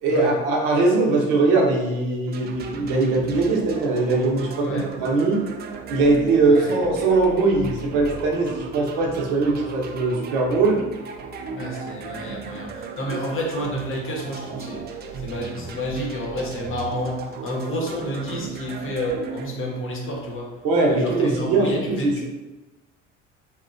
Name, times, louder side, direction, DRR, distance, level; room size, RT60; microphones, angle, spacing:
voice 1, 0.0-5.4 5.9-10.8 13.1-13.2 20.6-22.3, right 3 dB, 60° right, -1 dB, 0.7 m, -21 dB
sound 1, 2.3-19.5, right 5 dB, 30° right, 0.4 m, -36 dB
voice 2, 11.5-14.9 15.1-20.5 20.9-22.3, equal, 35° left, -1 dB, 0.8 m, -30 dB
2.8 x 2.2 x 2.5 m, 1.1 s
hypercardioid pair, 60°, 36 cm